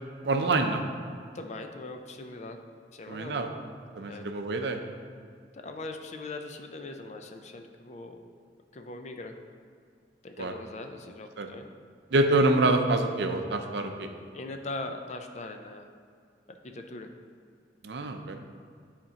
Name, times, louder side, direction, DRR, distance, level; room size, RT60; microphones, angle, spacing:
voice 1, 0.2-0.8 3.1-3.5 4.0-4.8 10.4-10.5 11.4-11.5 12.1-14.1 17.8-18.4, right 2 dB, 70° right, 5 dB, 0.5 m, -26 dB
voice 2, 1.3-2.6 2.9-3.4 4.1-4.3 5.5-8.2 8.7-9.3 10.2-11.7 14.3-15.9 16.5-17.1, left 2 dB, 40° left, 5 dB, 0.4 m, -40 dB
10.0 x 4.3 x 2.8 m, 2.2 s
head